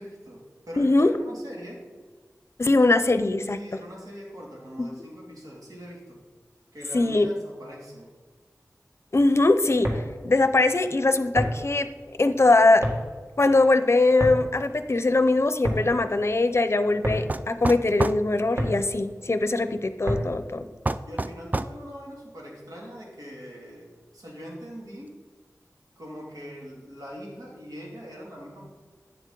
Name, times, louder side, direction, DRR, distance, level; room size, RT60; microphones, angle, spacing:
voice 1, 0.0-1.8 3.5-6.2 6.7-8.1 21.1-25.2 26.0-28.7, equal, 80° right, -3 dB, 2.5 m, -42 dB
voice 2, 0.8-1.1 2.6-3.6 6.9-7.3 9.1-9.9 10.2-11.9 12.2-12.8 13.4-20.7, left 2 dB, 45° left, 10 dB, 0.6 m, -21 dB
sound 1, 9.7-20.5, equal, 45° right, 1.7 m, -32 dB
sound 2, 17.3-18.2 20.8-21.8, right 2 dB, 30° right, 0.3 m, -27 dB
9.6 x 7.4 x 3.8 m, 1.5 s
wide cardioid pair, 65°, 6 cm